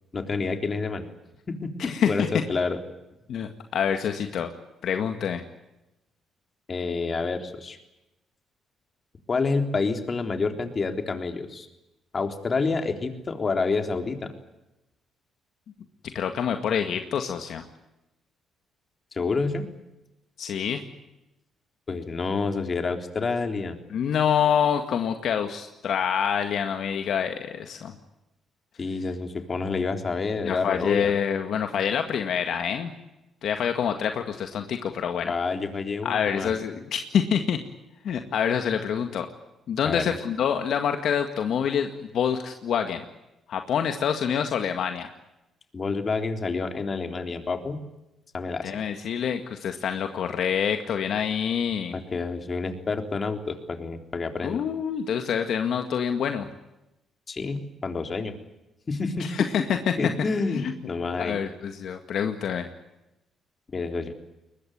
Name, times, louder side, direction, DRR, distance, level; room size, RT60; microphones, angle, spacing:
voice 1, 0.1-1.1 1.5-2.8 6.7-7.8 9.3-11.7 12.1-14.3 19.1-19.6 21.9-23.8 28.8-31.1 35.2-36.5 39.9-40.2 45.7-47.8 48.3-48.7 51.9-54.6 57.3-58.3 58.9-59.3 60.0-61.4 63.7-64.1, left 4 dB, 35° left, 6 dB, 3.7 m, -28 dB
voice 2, 1.8-2.3 3.3-4.5 4.8-5.4 16.1-17.6 20.4-20.8 23.9-27.9 30.4-32.9 33.4-35.3 36.0-37.6 38.0-39.3 39.7-43.0 43.5-45.1 48.6-51.9 54.4-56.5 59.2-60.0 60.5-60.7 61.2-62.7, left 8 dB, 70° left, 6 dB, 1.9 m, -26 dB
22.5 x 21.0 x 9.4 m, 0.93 s
cardioid pair, 90°, 0 cm